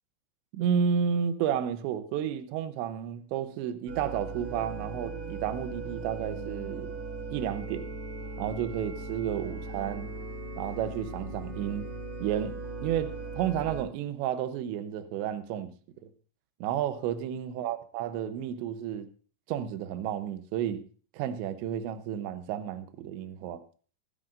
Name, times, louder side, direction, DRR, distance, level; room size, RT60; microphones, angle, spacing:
voice 1, 0.5-6.9 7.3-7.9 8.4-10.1 10.6-11.9 12.2-15.7 16.6-19.1 19.5-20.8 21.1-23.6, right 8 dB, 80° right, 3.0 m, -31 dB
sound 1, 3.9-13.8, right 3 dB, 40° right, 2.1 m, -38 dB
24.5 x 9.6 x 2.6 m
omnidirectional pair, 5.4 m